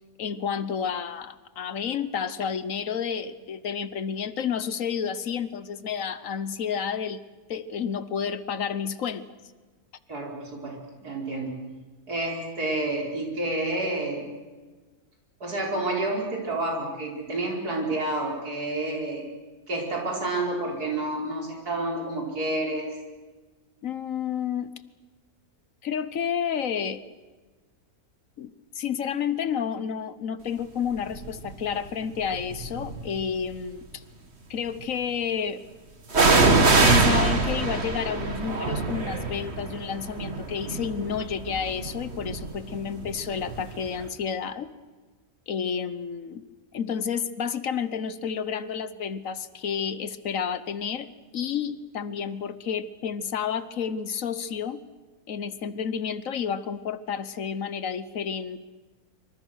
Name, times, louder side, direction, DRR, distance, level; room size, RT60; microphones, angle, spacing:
voice 1, 0.2-7.2 7.5-9.3 23.8-24.7 25.8-27.0 28.4-34.0 34.5-35.6 36.8-44.7 45.5-46.4 46.7-54.8 55.3-58.6, left 7 dB, 60° left, 14 dB, 1.3 m, -30 dB
voice 2, 10.1-11.6 12.1-14.3 15.4-19.3 19.7-22.9, right 2 dB, 85° right, -1 dB, 5.7 m, -29 dB
sound 1, 31.2-31.5 32.3-33.2 36.1-43.8 44.0-44.1, right 3 dB, 45° right, 2.1 m, -24 dB
26.0 x 25.0 x 6.5 m, 1.3 s
omnidirectional pair, 1.6 m